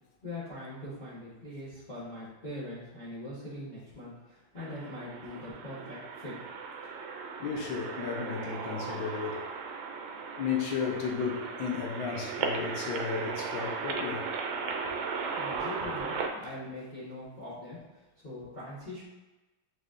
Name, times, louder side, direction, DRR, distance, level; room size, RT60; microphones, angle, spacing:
voice 1, 0.2-6.3 15.3-17.8 18.2-19.0, left 1 dB, 30° left, -11 dB, 1.0 m, -42 dB
sound 1, 4.6-16.3, right 5 dB, 75° right, 1.3 m, -36 dB
voice 2, 7.4-9.5 10.4-14.3, left 6 dB, 70° left, 0 dB, 1.4 m, -34 dB
5.0 x 4.1 x 2.5 m, 1.1 s
omnidirectional pair, 2.3 m